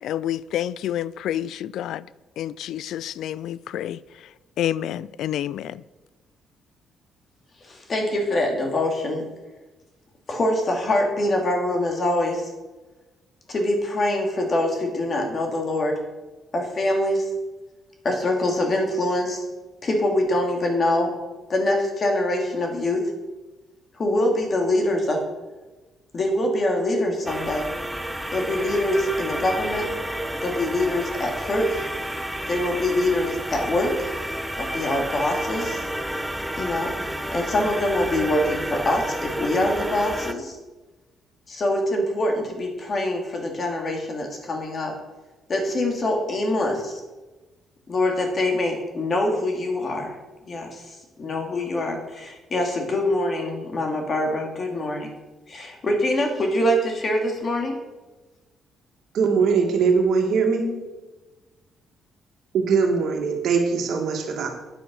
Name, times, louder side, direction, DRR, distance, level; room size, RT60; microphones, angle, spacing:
voice 1, 0.0-2.0 2.4-4.3 4.6-5.8, left 11 dB, 80° left, 0.3 m, -29 dB
voice 2, 7.6-9.2 10.3-12.5 13.5-15.9 16.5-17.3 18.0-19.4 19.8-21.1 21.5-23.0 24.0-25.2 26.1-27.7 28.3-29.9 30.4-31.9 32.5-34.1 34.6-35.9 36.6-36.9 37.3-40.6 41.5-44.9 45.5-47.0 47.9-50.2 50.5-55.1 55.5-57.8, left 1 dB, 40° left, 2.6 m, -24 dB
sound 1, 27.3-40.3, right 1 dB, 5° right, 0.7 m, -31 dB
voice 3, 59.1-60.8 62.5-64.5, right 5 dB, 70° right, 2.1 m, -21 dB
9.2 x 7.0 x 6.2 m
cardioid pair, 90°, 0 cm